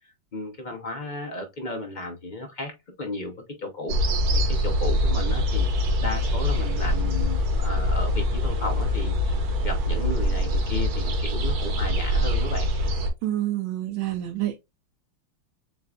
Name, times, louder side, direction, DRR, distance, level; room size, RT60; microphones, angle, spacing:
voice 1, 0.3-2.7 3.0-4.0 4.3-12.7, left 2 dB, 70° left, 0.4 m, -34 dB
sound 1, 3.9-13.1, left 1 dB, 55° right, 1.2 m, -24 dB
voice 2, 13.2-14.6, right 13 dB, 75° right, 1.3 m, -28 dB
7.7 x 2.6 x 2.4 m
omnidirectional pair, 2.4 m